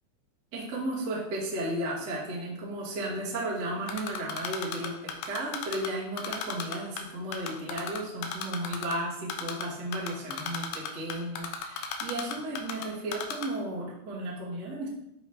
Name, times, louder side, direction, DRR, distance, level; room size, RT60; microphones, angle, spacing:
voice 1, 0.5-14.9, right 1 dB, 80° right, -6 dB, 0.9 m, -34 dB
Typing, 3.9-5.9 6.2-7.0 7.3-8.9 9.3-9.6 9.9-12.8 13.1-13.5, left 7 dB, 80° left, 2.7 m, -34 dB
9.6 x 3.5 x 2.8 m, 0.81 s
omnidirectional pair, 5.1 m